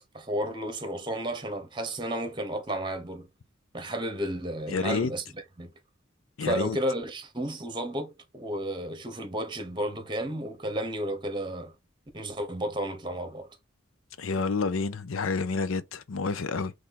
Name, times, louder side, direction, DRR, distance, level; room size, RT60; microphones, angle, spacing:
voice 1, 0.0-3.3 3.7-5.2 5.6-5.7 6.4-11.7 12.1-13.5, right 1 dB, 25° right, 1.0 m, -32 dB
voice 2, 4.7-5.1 6.4-6.8 14.2-16.7, left 4 dB, 85° left, 0.6 m, -29 dB
4.3 x 3.3 x 3.7 m
head